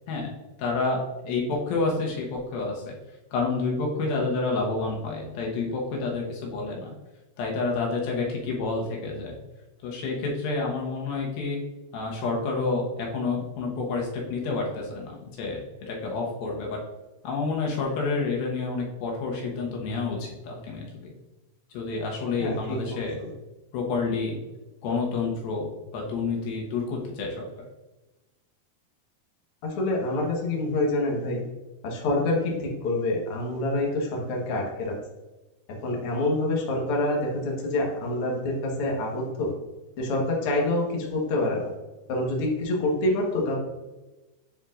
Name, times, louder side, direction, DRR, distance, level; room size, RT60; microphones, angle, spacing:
voice 1, 0.6-2.9 3.3-6.9 7.4-9.4 9.8-11.6 11.9-16.8 17.2-21.1 21.7-23.2 23.7-24.4 24.8-27.5, left 3 dB, 70° left, -1 dB, 2.8 m, -29 dB
voice 2, 22.4-23.3 29.6-31.4 31.8-35.0 35.8-39.5 40.0-41.7 42.1-43.5, left 2 dB, 85° left, -1 dB, 1.2 m, -27 dB
9.8 x 4.6 x 2.5 m, 1.1 s
omnidirectional pair, 4.7 m